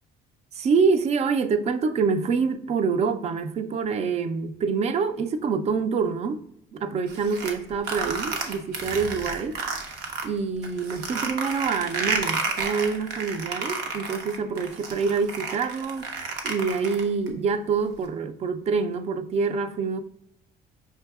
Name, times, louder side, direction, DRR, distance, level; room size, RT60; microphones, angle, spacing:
voice 1, 0.5-6.4 6.7-9.6 10.2-16.1 16.4-20.0, right 5 dB, 40° right, 0.4 m, -26 dB
sound 1, 7.1-10.3 10.6-17.3, right 4 dB, 85° right, 0.8 m, -31 dB
5.4 x 2.6 x 2.3 m
cardioid pair, 110°, 17 cm